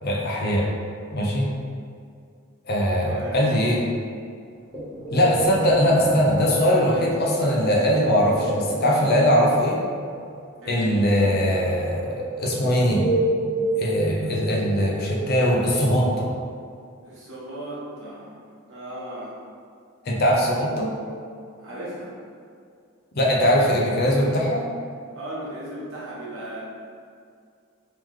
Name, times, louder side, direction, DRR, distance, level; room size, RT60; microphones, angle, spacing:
voice 1, 0.0-0.7 1.1-1.5 2.7-3.8 5.1-9.8 10.7-13.0 13.8-16.3 20.1-20.9 23.2-24.6, equal, 50° left, -2 dB, 0.6 m, -21 dB
voice 2, 3.0-3.4 10.6-11.0 17.0-18.4 18.7-19.4 21.6-22.1 25.1-26.6, right 1 dB, 65° right, -7 dB, 1.2 m, -36 dB
sound 1, 4.7-16.1, right 1 dB, 25° left, 1.4 m, -29 dB
3.1 x 3.0 x 3.6 m, 2.3 s
head